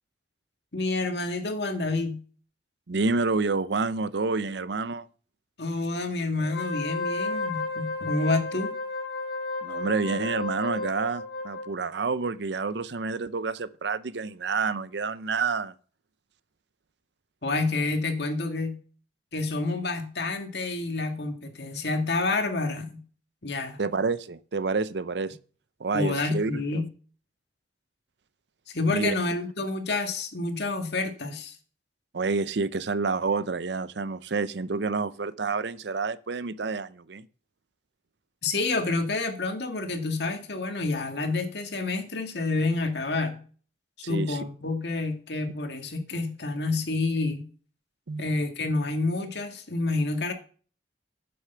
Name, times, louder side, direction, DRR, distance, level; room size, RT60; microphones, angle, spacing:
voice 1, 0.7-2.2 5.6-8.8 17.4-18.8 19.3-23.0 23.4-23.8 25.9-26.9 28.7-31.6 38.4-43.4 44.1-47.5 48.2-50.3, left 3 dB, 70° left, 2.0 m, -28 dB
voice 2, 2.9-5.1 9.6-15.7 23.8-25.4 25.8-26.6 28.9-29.1 32.1-37.3 44.0-44.4 48.1-48.2, right 4 dB, 75° right, 0.6 m, -28 dB
Wind instrument woodwind instrument, 6.4-11.7, left 3 dB, 85° left, 4.1 m, -32 dB
9.6 x 6.8 x 6.8 m
head